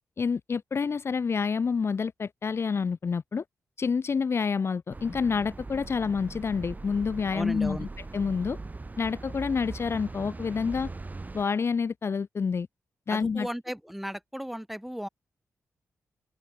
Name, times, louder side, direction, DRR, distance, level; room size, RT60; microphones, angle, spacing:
voice 1, 0.2-3.4 3.8-7.9 8.1-8.6 9.0-10.9 11.3-12.7 13.1-13.5, left 5 dB, 50° left, 0.7 m, -28 dB
sound 1, 4.9-11.4, right 3 dB, 30° right, 2.8 m, -40 dB
voice 2, 7.3-7.9 13.1-15.1, equal, 5° right, 4.2 m, -35 dB
open air
cardioid pair, 80°, 6 cm